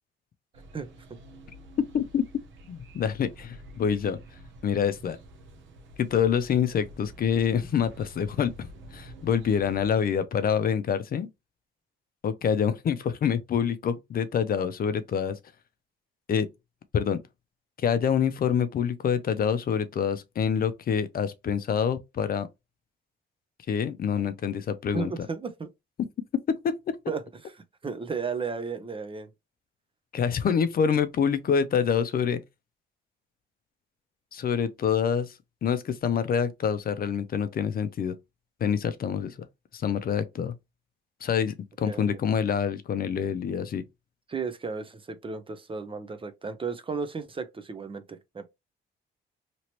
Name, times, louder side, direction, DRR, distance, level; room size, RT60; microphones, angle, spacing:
sound 1, 0.5-9.9, right 1 dB, 70° right, 0.8 m, -48 dB
voice 1, 0.7-1.2 24.9-25.7 27.1-27.2 27.8-29.3 41.9-42.2 44.3-48.5, right 5 dB, 25° right, 0.6 m, -34 dB
voice 2, 1.9-2.2 2.7-4.2 4.6-5.2 6.0-11.3 12.2-15.4 16.3-16.5 16.9-17.2 17.8-22.5 23.7-25.1 26.5-27.0 30.1-32.4 34.3-38.2 38.6-39.4 39.7-40.5 41.2-43.8, left 7 dB, 50° left, 0.5 m, -26 dB
3.0 x 2.9 x 2.9 m
cardioid pair, 90°, 20 cm